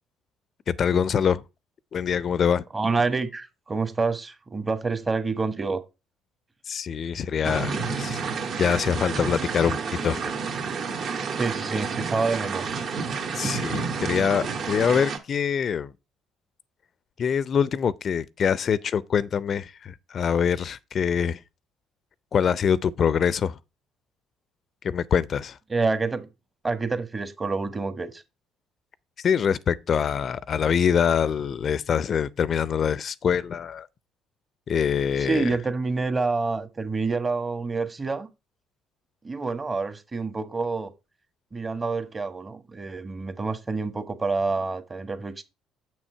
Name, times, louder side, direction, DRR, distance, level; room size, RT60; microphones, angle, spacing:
voice 1, 0.7-1.4 1.9-2.7 6.7-8.2 8.6-10.3 13.3-15.9 17.2-21.4 22.3-23.6 24.8-25.6 29.2-33.9 34.7-35.6, left 7 dB, 50° left, 0.5 m, -24 dB
voice 2, 2.7-5.8 11.3-12.8 13.4-13.5 25.7-26.3 26.6-28.2 35.2-38.3 39.2-40.9 41.5-45.4, right 4 dB, 25° right, 1.4 m, -27 dB
sound 1, 7.4-15.2, right 5 dB, 55° right, 1.6 m, -30 dB
7.3 x 6.3 x 4.5 m
hypercardioid pair, 55°, 0 cm